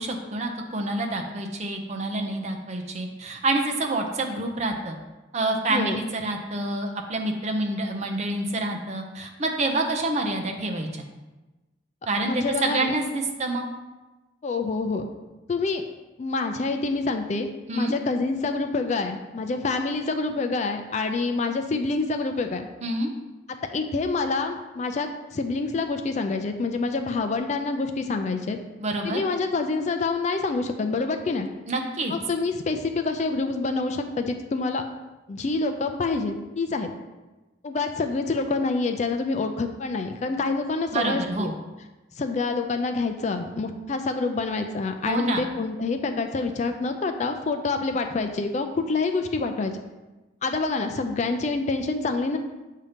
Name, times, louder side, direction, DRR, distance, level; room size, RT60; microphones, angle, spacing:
voice 1, 0.0-5.0 5.3-11.0 12.1-13.7 17.7-17.9 22.8-23.1 28.8-29.2 31.7-32.1 40.9-41.6 45.1-45.4, right 2 dB, 35° right, 3 dB, 0.6 m, -27 dB
voice 2, 5.7-6.0 12.3-12.9 14.4-15.1 15.5-15.8 16.2-17.5 17.7-22.7 23.7-28.6 29.0-31.5 32.1-34.8 35.3-36.9 37.6-41.5 42.2-49.7 50.4-52.4, left 3 dB, 35° left, 6 dB, 0.3 m, -27 dB
7.2 x 2.8 x 5.0 m, 1.1 s
head